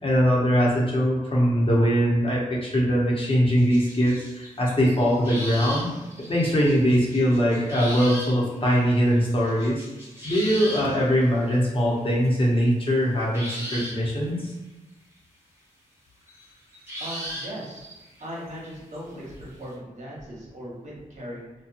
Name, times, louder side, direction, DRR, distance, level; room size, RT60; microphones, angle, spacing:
voice 1, 0.0-5.9 6.3-9.9 10.2-14.5, equal, 40° left, -5 dB, 1.0 m, -22 dB
sound 1, 3.6-11.0 12.0-12.3 12.6-12.7 13.3-14.3 16.3-19.0 19.4-19.5, equal, 15° right, 1.0 m, -38 dB
voice 2, 17.0-17.8 18.2-21.5, equal, 55° right, -5 dB, 1.1 m, -38 dB
2.8 x 2.3 x 2.5 m, 1.1 s
cardioid pair, 60°, 14 cm